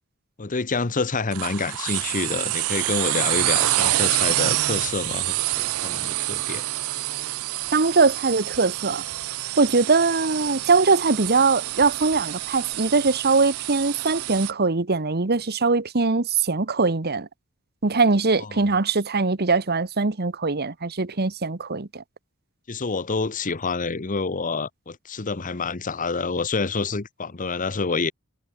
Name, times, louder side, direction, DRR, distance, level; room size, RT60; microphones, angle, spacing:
voice 1, 0.4-6.6 18.4-18.6 22.7-28.1, left 4 dB, 40° left, 1.0 m, -28 dB
sound 1, 1.3-14.5, right 16 dB, 90° right, 0.4 m, -27 dB
voice 2, 7.7-9.0 9.6-17.3 17.8-22.0, right 4 dB, 50° right, 1.3 m, -21 dB
head